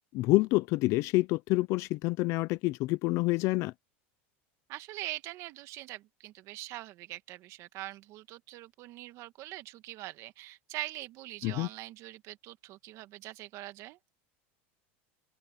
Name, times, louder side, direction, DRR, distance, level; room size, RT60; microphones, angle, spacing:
voice 1, 0.1-3.7 11.4-11.7, left 21 dB, 50° left, 0.7 m, -27 dB
voice 2, 4.7-14.0, right 17 dB, 50° right, 1.8 m, -43 dB
supercardioid pair, 125°, 6 cm